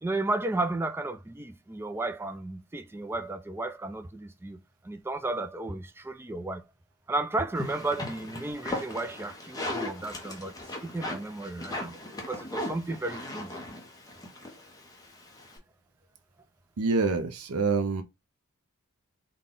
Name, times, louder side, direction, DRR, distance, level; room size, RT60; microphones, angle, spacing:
voice 1, 0.0-4.6 4.8-6.6 7.1-10.5 10.8-12.0 12.3-13.5, right 2 dB, 10° right, 0.3 m, -33 dB
sound 1, 7.5-15.6, left 1 dB, 15° left, 0.7 m, -38 dB
voice 2, 16.8-18.0, right 4 dB, 75° right, 0.5 m, -26 dB
3.7 x 2.2 x 3.7 m
head